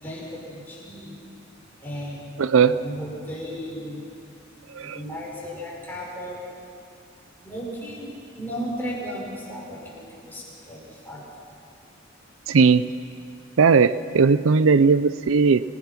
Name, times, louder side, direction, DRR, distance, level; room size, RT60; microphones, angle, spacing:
voice 1, 0.0-1.2 1.8-2.2 2.6-4.0 4.8-6.4 7.4-11.3, equal, 10° left, -4 dB, 6.1 m, -35 dB
voice 2, 2.4-2.7 4.7-5.0 12.5-12.9 13.6-15.6, right 5 dB, 80° right, 15 dB, 0.5 m, -17 dB
27.0 x 17.5 x 6.0 m, 2.5 s
head